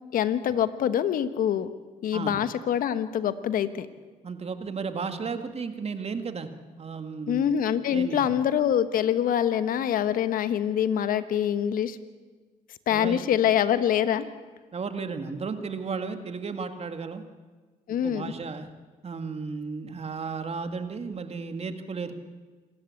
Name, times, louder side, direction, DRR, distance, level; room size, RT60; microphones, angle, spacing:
voice 1, 0.1-1.7 2.0-3.9 7.3-12.0 12.9-14.3 17.9-18.3, left 9 dB, 75° left, 13 dB, 1.2 m, -25 dB
voice 2, 4.2-6.5 6.8-7.5 7.9-8.3 12.9-13.2 14.7-17.2 18.0-18.7 19.0-22.2, right 5 dB, 45° right, 8 dB, 2.1 m, -34 dB
27.5 x 13.5 x 8.5 m, 1.4 s
supercardioid pair, 65°, 15 cm